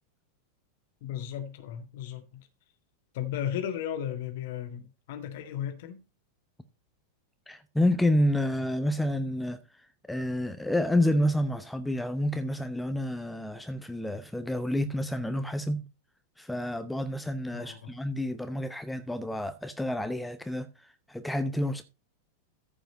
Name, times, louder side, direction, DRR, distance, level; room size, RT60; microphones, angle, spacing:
voice 1, 1.0-2.5 3.1-6.0 17.5-17.9, left 10 dB, 50° left, 1.8 m, -35 dB
voice 2, 7.5-9.6 10.1-15.8 16.4-20.7 21.1-21.8, left 1 dB, 5° left, 0.9 m, -29 dB
14.0 x 5.1 x 4.2 m
figure-of-eight pair, 90°, 0 cm